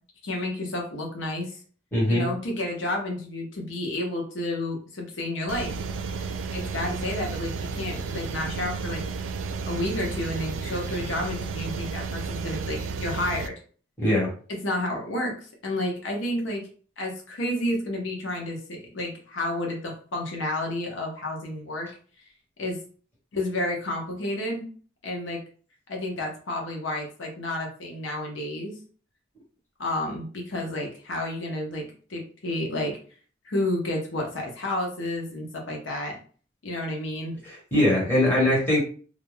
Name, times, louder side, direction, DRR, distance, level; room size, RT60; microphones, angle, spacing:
voice 1, 0.2-1.6 2.1-5.7 6.5-9.0 9.6-13.5 14.5-16.7 17.0-21.9 22.6-22.8 23.3-24.7 25.0-25.4 25.9-28.8 29.8-33.0 33.4-36.2 36.6-37.4, left 1 dB, 85° left, 1 dB, 0.7 m, -30 dB
voice 2, 1.9-2.3 14.0-14.3 37.4-38.8, left 1 dB, 10° left, -5 dB, 1.1 m, -22 dB
sound 1, 5.5-13.5, right 4 dB, 90° right, 0.3 m, -32 dB
2.4 x 2.2 x 3.1 m, 0.42 s
head